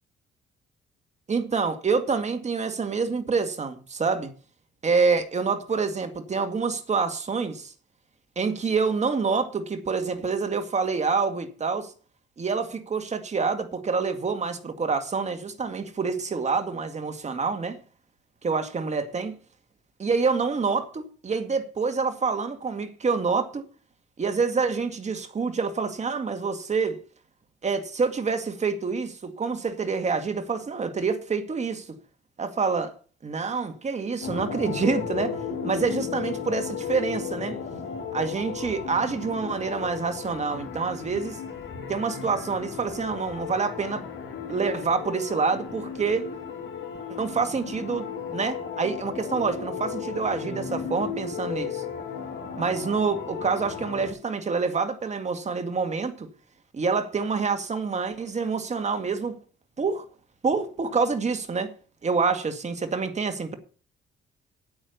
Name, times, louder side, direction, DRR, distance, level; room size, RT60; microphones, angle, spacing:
voice 1, 1.3-4.3 4.8-7.7 8.4-11.9 12.4-17.8 18.4-19.3 20.0-23.6 24.2-27.0 27.6-32.0 32.4-32.9 33.2-37.6 38.1-41.4 41.9-44.0 44.5-46.3 47.2-51.8 52.6-56.3 56.7-59.4 59.8-60.0 60.4-61.7 62.0-63.6, right 5 dB, 35° right, 2.0 m, -27 dB
sound 1, 34.2-54.1, left 6 dB, 75° left, 3.1 m, -35 dB
8.9 x 8.9 x 7.0 m
cardioid pair, 90°, 20 cm